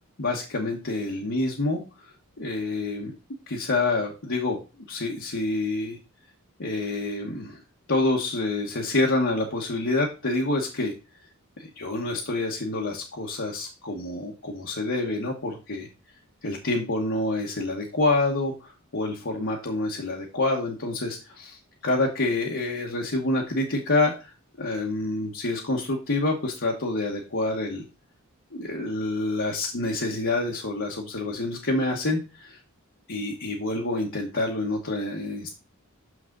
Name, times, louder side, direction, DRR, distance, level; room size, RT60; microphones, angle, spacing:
voice 1, 0.2-2.1 2.4-3.1 3.5-4.6 4.9-6.0 6.6-7.6 7.9-10.9 11.6-15.9 16.4-24.3 24.6-27.8 28.5-32.6 33.1-35.6, left 2 dB, 60° left, -2 dB, 1.3 m, -27 dB
6.6 x 6.2 x 3.8 m, 0.30 s
head